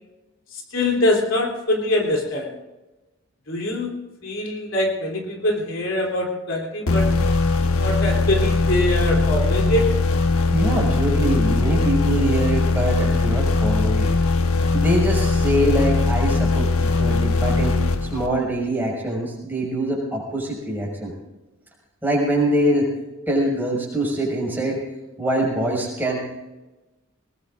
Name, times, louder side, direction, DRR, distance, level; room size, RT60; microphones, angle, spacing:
voice 1, 0.5-2.6 3.5-3.9 4.2-7.1 7.8-9.8, left 1 dB, 65° left, 0 dB, 3.1 m, -23 dB
sound 1, 6.9-18.6, left 3 dB, 90° left, 1.2 m, -20 dB
voice 2, 10.5-14.1 14.7-17.8 18.1-21.1 22.0-22.9 23.3-24.8 25.2-26.2, right 1 dB, 10° right, -4 dB, 5.6 m, -23 dB
21.0 x 20.5 x 2.5 m, 1.1 s
head